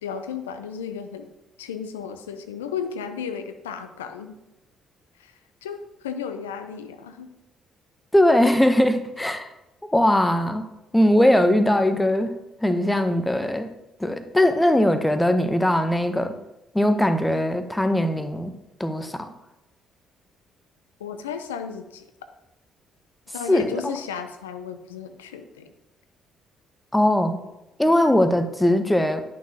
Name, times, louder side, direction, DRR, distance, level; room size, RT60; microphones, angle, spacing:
voice 1, 0.0-1.3 1.6-4.4 5.2-7.3 21.0-22.1 23.3-25.7 27.8-28.2, left 7 dB, 85° left, 8 dB, 0.5 m, -34 dB
voice 2, 8.1-9.5 9.8-10.7 10.9-12.3 12.6-13.7 14.0-16.3 16.7-18.5 18.8-19.3 23.5-23.9 26.9-27.4 27.8-29.2, left 1 dB, 10° left, 9 dB, 0.8 m, -20 dB
10.5 x 6.1 x 2.8 m, 0.95 s
hypercardioid pair, 45°, 0 cm